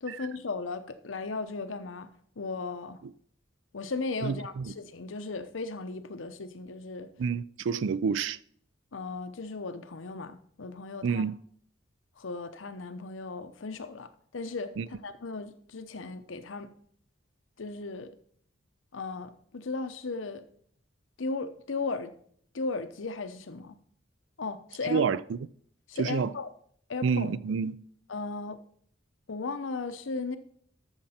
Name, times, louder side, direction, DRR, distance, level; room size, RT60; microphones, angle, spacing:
voice 1, 0.0-2.1 2.4-3.0 3.7-7.1 8.9-11.2 12.2-14.1 14.3-14.7 15.0-16.7 17.6-18.1 18.9-20.4 21.2-22.1 22.5-23.8 24.4-25.0 25.9-26.5 26.9-27.3 28.1-28.6 29.3-30.4, left 3 dB, 90° left, 0.8 m, -36 dB
voice 2, 4.2-4.7 7.2-8.4 11.0-11.4 14.8-14.9 24.9-25.4 26.0-26.3 27.0-27.8, right 5 dB, 75° right, 0.4 m, -29 dB
13.0 x 6.6 x 4.3 m
head